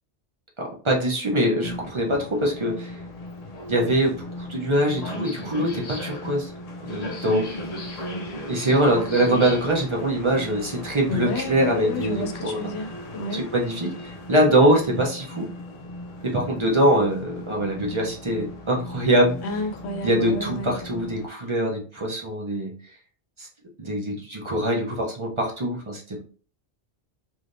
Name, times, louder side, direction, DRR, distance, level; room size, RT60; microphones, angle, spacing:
voice 1, 0.6-3.0 3.7-6.5 6.8-7.4 8.5-12.6 13.3-15.5 16.2-19.4 20.0-22.7 23.4-23.5 23.8-26.2, right 1 dB, 35° right, -2 dB, 0.6 m, -23 dB
sound 1, 1.6-21.3, left 1 dB, 50° left, 0.5 m, -36 dB
voice 2, 11.1-13.4 19.4-20.8, left 2 dB, 80° left, 4 dB, 0.9 m, -30 dB
3.3 x 2.6 x 2.5 m, 0.41 s
omnidirectional pair, 1.1 m